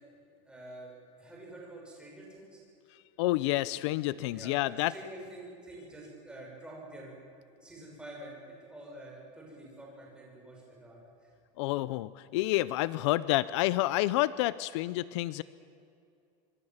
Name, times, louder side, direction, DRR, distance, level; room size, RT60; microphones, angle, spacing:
voice 1, 0.4-2.6 4.3-7.1 7.5-11.3, right 1 dB, 5° right, -2 dB, 6.4 m, -48 dB
voice 2, 3.2-4.9 11.6-15.4, left 17 dB, 65° left, 17 dB, 0.6 m, -29 dB
26.0 x 24.0 x 7.4 m, 2.6 s
cardioid pair, 175°, 16 cm